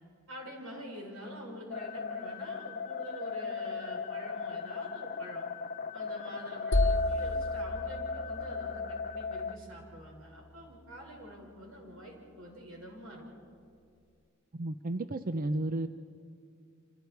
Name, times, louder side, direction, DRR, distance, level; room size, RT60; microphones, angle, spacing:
voice 1, 0.3-5.4 5.9-13.2, equal, 85° right, 0 dB, 5.9 m, -46 dB
sound 1, 1.7-9.6, left 5 dB, 45° left, 0.8 m, -38 dB
sound 2, 6.7-10.5, left 2 dB, 65° left, 1.0 m, -32 dB
voice 2, 14.5-15.9, right 2 dB, 45° right, 9 dB, 0.6 m, -32 dB
29.0 x 26.5 x 4.7 m, 2.3 s
head